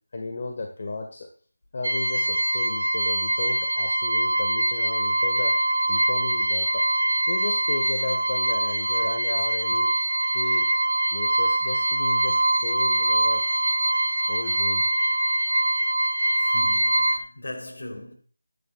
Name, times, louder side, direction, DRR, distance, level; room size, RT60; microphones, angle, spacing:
voice 1, 0.1-1.3 1.7-5.6 5.9-6.9 7.3-9.9 10.3-10.7 11.1-13.4 14.3-14.9, left 3 dB, 45° left, 1.4 m, -34 dB
sound 1, 1.8-17.2, right 1 dB, 85° right, 1.1 m, -23 dB
voice 2, 16.4-18.1, left 1 dB, 70° left, 3.2 m, -38 dB
12.5 x 10.5 x 2.3 m
figure-of-eight pair, 165°, 0 cm